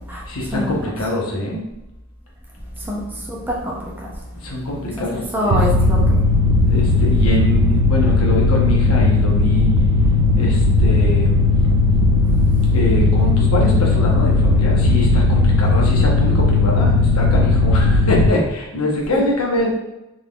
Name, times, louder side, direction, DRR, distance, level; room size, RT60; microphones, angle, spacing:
voice 1, 0.3-1.6 4.4-5.7 6.7-9.7 10.3-11.4 12.7-19.7, left 1 dB, 80° left, -2 dB, 0.9 m, -23 dB
voice 2, 3.3-4.1 5.0-5.1 5.3-6.0 19.1-19.2, equal, 10° right, -4 dB, 0.5 m, -24 dB
Mechanical fan, 5.5-18.3, left 2 dB, 80° right, 0.4 m, -16 dB
3.7 x 3.7 x 2.3 m, 0.94 s
head